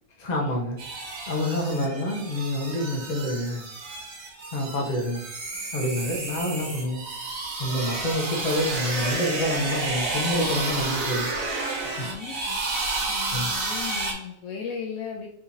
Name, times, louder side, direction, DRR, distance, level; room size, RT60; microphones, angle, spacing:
voice 1, 0.2-3.6 4.5-5.2 5.7-7.0 7.6-11.3 12.0-12.1 13.3-13.6, left 1 dB, 35° left, -1 dB, 1.0 m, -27 dB
sound 1, 0.8-14.1, right 3 dB, 75° right, 1.4 m, -31 dB
voice 2, 12.0-12.6 13.1-15.3, left 6 dB, 70° left, -1 dB, 0.9 m, -37 dB
4.4 x 3.7 x 2.7 m, 0.76 s
omnidirectional pair, 1.5 m